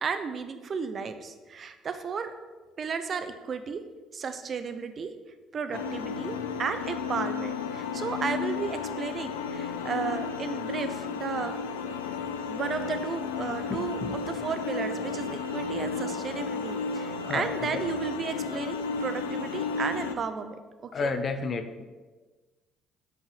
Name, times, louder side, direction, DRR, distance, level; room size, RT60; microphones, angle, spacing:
voice 1, 0.0-2.3 2.8-3.8 4.1-5.1 5.5-11.5 12.5-20.6 21.0-21.1, right 5 dB, 45° right, 9 dB, 0.8 m, -34 dB
sound 1, 5.7-20.2, left 5 dB, 80° left, 0.5 m, -33 dB
voice 2, 13.7-14.2 17.2-17.5 17.7-17.8 20.9-21.8, left 4 dB, 45° left, 9 dB, 0.8 m, -31 dB
7.8 x 5.5 x 6.9 m, 1.3 s
hypercardioid pair, 50°, 0 cm